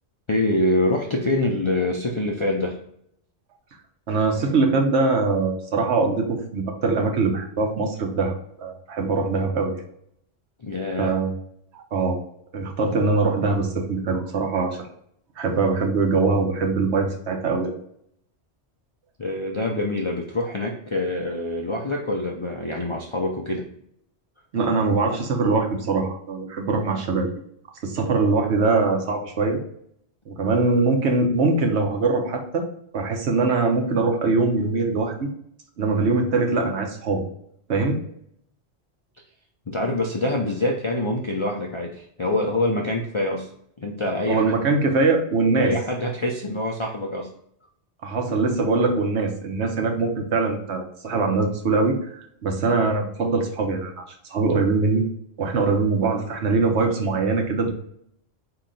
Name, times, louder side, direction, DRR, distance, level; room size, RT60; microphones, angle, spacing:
voice 1, 0.3-2.8 10.6-11.1 19.2-23.7 39.7-43.5 43.8-44.5 45.6-47.3 52.7-52.8, left 1 dB, 50° left, 0 dB, 0.3 m, -25 dB
voice 2, 4.1-8.3 8.6-9.8 11.0-11.3 11.7-12.2 12.5-14.9 15.4-17.7 24.5-27.3 27.8-29.6 30.3-32.7 32.9-35.3 35.8-37.2 37.7-38.0 44.3-45.7 48.0-54.0 54.3-55.0 55.4-57.7, right 3 dB, 75° right, 3 dB, 1.1 m, -22 dB
4.3 x 2.9 x 3.8 m, 0.69 s
omnidirectional pair, 1.2 m